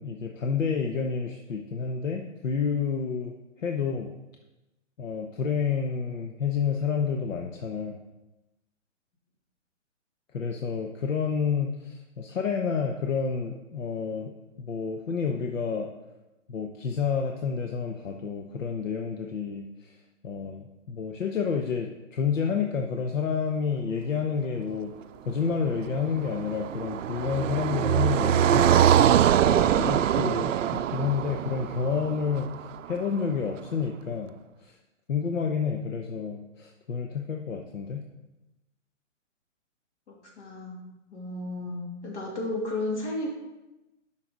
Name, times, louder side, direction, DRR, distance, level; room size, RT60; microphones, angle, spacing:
voice 1, 0.0-4.1 5.0-8.0 10.3-14.3 14.6-15.9 16.5-20.0 20.2-24.9 25.2-29.1 29.5-34.3 34.6-34.7 35.1-38.0, left 6 dB, 85° left, 3 dB, 1.0 m, -29 dB
Car passing by, 25.7-32.9, right 10 dB, 80° right, 0.5 m, -23 dB
voice 2, 40.1-40.8 41.1-43.3, left 2 dB, 65° left, -1 dB, 2.9 m, -33 dB
10.5 x 5.8 x 3.9 m, 1.0 s
hypercardioid pair, 175°, 38 cm